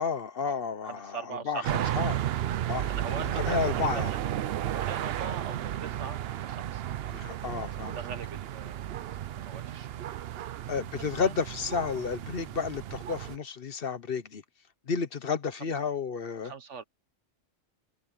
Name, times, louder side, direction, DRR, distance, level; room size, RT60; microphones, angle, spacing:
voice 1, 0.0-2.2 2.7-4.1 7.1-8.0 10.7-14.4 14.9-16.5, left 6 dB, 55° left, 1.1 m, -32 dB
voice 2, 0.8-1.7 2.7-4.3 4.7-6.8 7.9-9.2 9.4-9.9 10.3-10.6 11.0-11.3 16.4-16.8, right 6 dB, 80° right, 1.7 m, -41 dB
sound 1, 1.6-13.4, right 11 dB, 65° right, 0.8 m, -33 dB
omnidirectional pair, 1.2 m